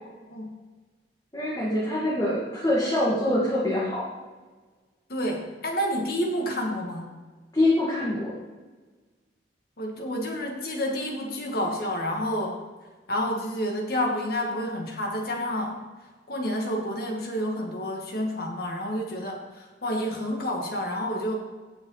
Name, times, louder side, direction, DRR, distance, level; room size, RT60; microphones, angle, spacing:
voice 1, 1.3-4.1 7.5-8.3, left 1 dB, 20° left, -8 dB, 2.2 m, -24 dB
voice 2, 5.1-7.1 9.8-12.6 13.1-15.8 16.3-21.4, equal, 55° left, 1 dB, 2.2 m, -29 dB
17.5 x 6.0 x 4.1 m, 1.3 s
head